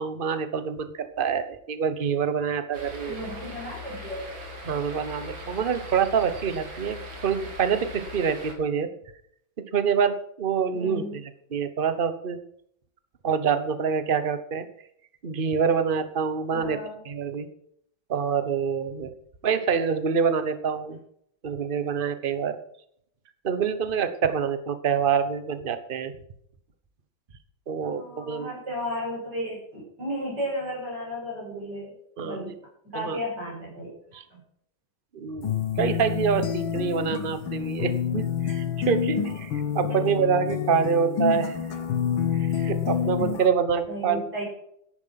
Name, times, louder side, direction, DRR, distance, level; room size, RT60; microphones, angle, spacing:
voice 1, 0.0-3.1 4.7-8.9 9.7-11.0 11.5-12.4 13.2-14.7 15.2-16.8 17.1-17.5 18.1-19.1 19.4-21.0 21.4-22.6 23.4-26.1 27.7-28.5 32.2-32.5 32.9-33.2 34.1-34.2 35.1-41.8 42.4-44.2, right 6 dB, 35° right, 11 dB, 1.1 m, -26 dB
sound 1, 2.7-8.5, left 1 dB, 85° right, 3.1 m, -40 dB
voice 2, 3.0-4.2 10.7-11.2 16.5-17.0 27.8-32.5 32.8-34.4 39.9-40.2 43.9-44.4, equal, 60° right, -3 dB, 8.0 m, -34 dB
sound 2, 35.4-43.5, left 8 dB, 85° left, 2.1 m, -28 dB
14.0 x 10.5 x 5.9 m, 0.69 s
omnidirectional pair, 2.1 m